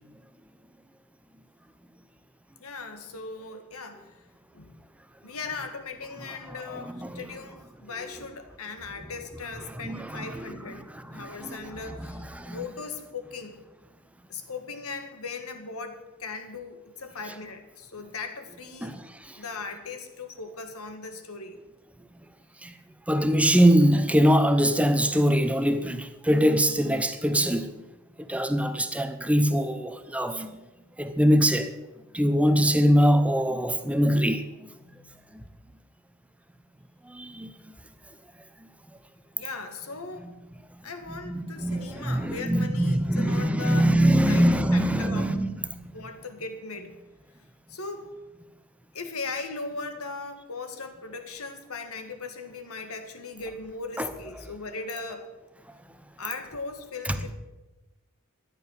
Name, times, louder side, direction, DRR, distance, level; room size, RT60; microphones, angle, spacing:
voice 1, 2.6-4.1 4.5-4.8 5.2-10.8 11.1-13.6 14.3-18.9 19.3-21.6 34.8-35.4 39.4-40.3 40.8-44.0 44.3-45.5 45.9-46.9 47.7-48.1 48.9-55.3 56.2-57.4, left 4 dB, 75° left, 1.9 m, -38 dB
voice 2, 9.8-10.4 11.1-11.7 12.1-12.7 18.8-19.4 22.6-22.7 23.1-27.8 28.3-30.6 31.0-31.7 32.1-34.5 37.1-37.5 40.2-40.3 41.2-45.8 54.0-54.1, equal, 5° right, 0.9 m, -23 dB
13.5 x 10.0 x 7.3 m
head